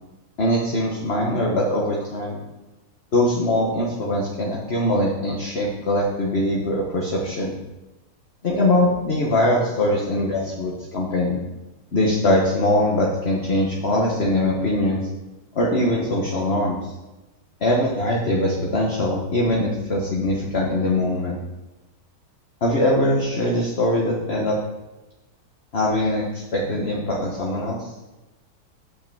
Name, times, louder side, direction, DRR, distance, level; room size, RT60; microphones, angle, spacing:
voice 1, 0.4-2.4 3.1-7.6 8.4-11.4 11.9-15.0 15.5-16.8 17.6-21.4 22.6-24.6 25.7-27.9, left 1 dB, 35° left, -3 dB, 1.4 m, -22 dB
8.8 x 5.8 x 7.1 m, 1.0 s
omnidirectional pair, 2.4 m